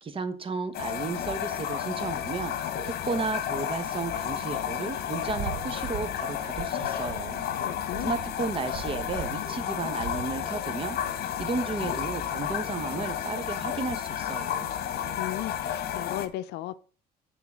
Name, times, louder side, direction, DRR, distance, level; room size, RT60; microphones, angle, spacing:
voice 1, 0.0-7.4 8.0-11.0 11.4-14.7, right 4 dB, 30° right, 1.1 m, -33 dB
sound 1, 0.7-16.3, left 9 dB, 65° left, 1.2 m, -32 dB
sound 2, 5.3-10.4, right 10 dB, 75° right, 0.8 m, -40 dB
voice 2, 7.6-8.1 15.2-16.8, left 14 dB, 80° left, 0.5 m, -35 dB
9.6 x 3.9 x 6.1 m
cardioid pair, 110°, 17 cm